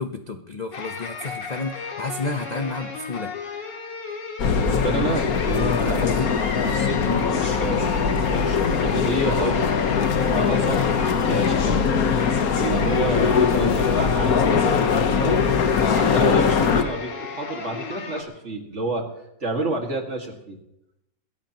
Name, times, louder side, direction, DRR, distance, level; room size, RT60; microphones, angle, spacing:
voice 1, 0.0-3.3 5.8-6.3 7.0-7.3 13.5-13.8, left 3 dB, 40° left, 5 dB, 0.6 m, -31 dB
sound 1, 0.7-18.2, left 4 dB, 80° left, 2.4 m, -35 dB
sound 2, 4.4-16.8, left 6 dB, 55° left, 1.4 m, -21 dB
voice 2, 4.5-9.7 10.3-11.9 12.6-14.8 15.1-15.5 15.9-19.1 19.4-20.6, right 2 dB, 40° right, 2 dB, 2.3 m, -30 dB
22.5 x 17.0 x 3.0 m, 0.86 s
omnidirectional pair, 1.9 m